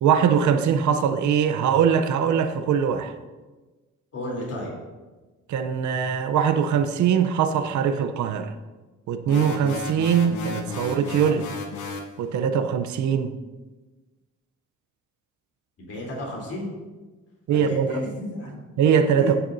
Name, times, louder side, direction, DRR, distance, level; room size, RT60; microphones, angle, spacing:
voice 1, 0.0-3.1 5.5-8.5 9.1-11.5 12.2-13.3 17.5-18.0 18.8-19.4, right 7 dB, 70° right, 9 dB, 0.7 m, -22 dB
voice 2, 4.1-4.7 15.8-16.7 17.5-18.6 19.2-19.4, left 1 dB, 50° left, -4 dB, 3.3 m, -33 dB
sound 1, 9.3-12.1, left 3 dB, 75° left, 1.1 m, -33 dB
14.5 x 6.9 x 2.7 m, 1.3 s
cardioid pair, 90°, 30 cm